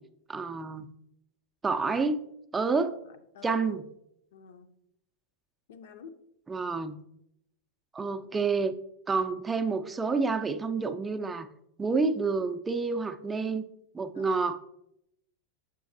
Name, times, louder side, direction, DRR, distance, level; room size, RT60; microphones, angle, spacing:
voice 1, 0.3-0.9 1.6-2.2 2.5-3.0 3.4-3.8 6.5-7.0 7.9-8.8 9.1-11.5 11.8-13.6 13.9-14.6, right 4 dB, 15° right, 8 dB, 0.5 m, -28 dB
voice 2, 3.1-3.7 4.3-4.7 5.7-6.2 14.1-14.5, left 6 dB, 55° left, 9 dB, 0.6 m, -49 dB
6.9 x 6.8 x 2.6 m, 0.76 s
figure-of-eight pair, 90°, 0 cm